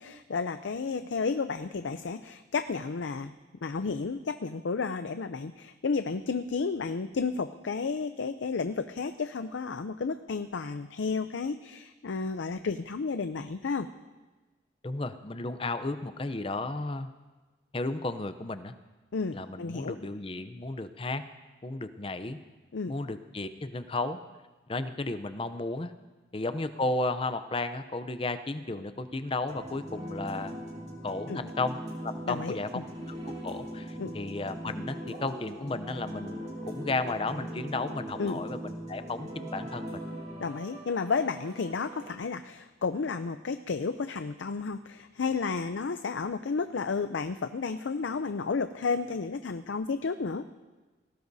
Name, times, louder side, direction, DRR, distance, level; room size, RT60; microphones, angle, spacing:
voice 1, 0.0-3.3 3.6-13.9 19.1-19.9 22.7-22.9 31.3-31.4 32.3-32.6 34.0-34.1 38.2-38.4 40.4-50.4, left 4 dB, 85° left, 10 dB, 0.5 m, -32 dB
voice 2, 14.8-17.1 17.7-18.7 19.3-21.2 21.6-22.4 22.9-24.2 24.7-25.9 26.3-30.6 31.0-32.7 33.1-33.2 33.4-40.0, left 2 dB, 30° left, 10 dB, 0.6 m, -34 dB
sound 1, 29.5-42.1, equal, 35° right, 2.4 m, -40 dB
20.0 x 17.5 x 2.7 m, 1.2 s
head